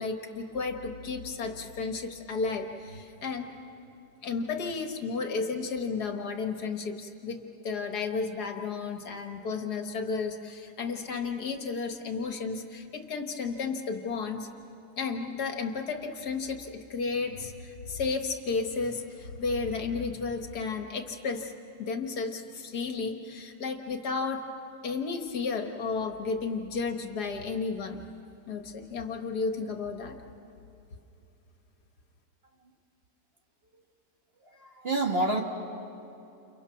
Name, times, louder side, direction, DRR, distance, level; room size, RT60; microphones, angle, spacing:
voice 1, 0.0-3.5 4.2-7.4 7.6-14.5 15.0-21.5 21.8-24.4 24.8-28.0 28.5-30.2, left 4 dB, 70° left, 5 dB, 2.0 m, -33 dB
voice 2, 34.4-35.4, right 2 dB, 35° right, 2 dB, 2.0 m, -28 dB
29.5 x 29.5 x 5.9 m, 2.8 s
omnidirectional pair, 1.8 m